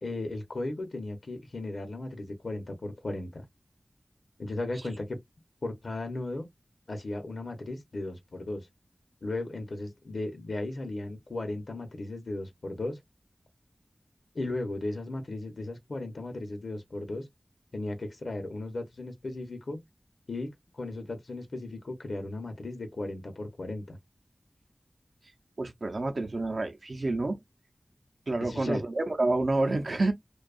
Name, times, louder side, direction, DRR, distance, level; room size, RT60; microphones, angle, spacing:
voice 1, 0.0-3.4 4.4-5.2 5.6-6.5 6.9-8.7 9.2-13.0 14.3-17.3 17.7-19.8 20.3-24.0 28.4-28.8, left 2 dB, 75° left, 0.7 m, -36 dB
voice 2, 25.6-27.4 28.3-30.1, right 2 dB, 65° right, 0.5 m, -28 dB
2.6 x 2.2 x 2.3 m
wide cardioid pair, 65°, 0 cm